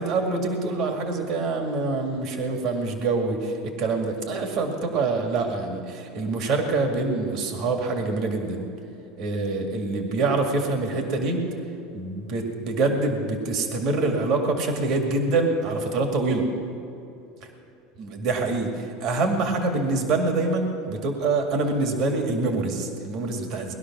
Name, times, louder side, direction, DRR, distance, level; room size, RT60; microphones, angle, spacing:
voice 1, 0.0-8.6 9.2-11.5 11.9-16.5 18.0-23.7, right 3 dB, 45° right, 3 dB, 2.1 m, -25 dB
20.0 x 12.0 x 6.1 m, 2.8 s
supercardioid pair, 145°, 0 cm